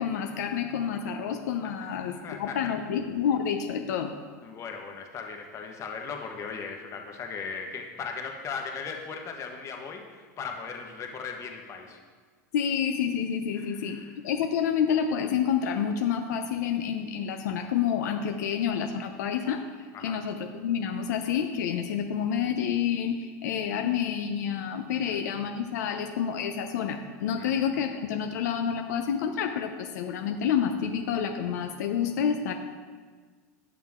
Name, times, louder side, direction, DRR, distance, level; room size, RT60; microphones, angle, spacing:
voice 1, 0.0-4.1 12.5-14.0 14.2-19.6 20.0-32.5, left 8 dB, 75° left, 5 dB, 0.7 m, -28 dB
voice 2, 1.8-2.7 4.4-12.0 13.6-14.0 19.9-20.2 25.0-25.2 27.4-27.5, left 5 dB, 35° left, 2 dB, 1.4 m, -38 dB
9.4 x 6.8 x 3.7 m, 1.5 s
hypercardioid pair, 115°, 9 cm